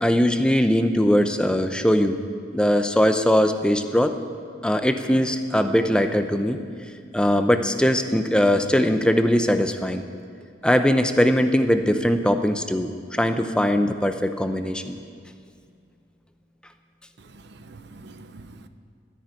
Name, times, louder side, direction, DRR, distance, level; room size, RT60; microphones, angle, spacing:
voice 1, 0.0-2.2 2.5-4.2 4.6-6.6 7.1-10.0 10.6-12.9 13.2-15.0, equal, 5° left, 7 dB, 0.6 m, -20 dB
voice 2, 17.2-18.7, right 2 dB, 60° right, 10 dB, 0.8 m, -45 dB
13.5 x 10.0 x 8.9 m, 2.2 s
head